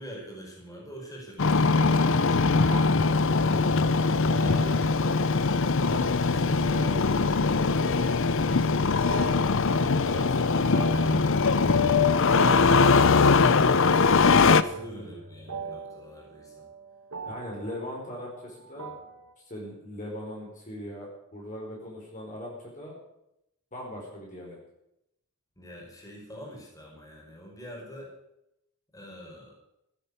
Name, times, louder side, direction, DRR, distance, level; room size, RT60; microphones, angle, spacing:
voice 1, 0.0-2.8 3.4-8.1 8.9-9.1 10.0-12.0 12.4-16.7 25.6-28.1 28.9-29.5, equal, 15° left, -2 dB, 5.3 m, -44 dB
Engine starting, 1.4-14.6, left 4 dB, 60° left, 0.7 m, -22 dB
sound 1, 2.7-19.3, right 4 dB, 90° right, 1.8 m, -42 dB
voice 2, 17.2-18.9 19.5-23.0 23.7-24.6, left 1 dB, 35° left, -2 dB, 5.0 m, -39 dB
15.5 x 9.4 x 8.3 m, 0.83 s
head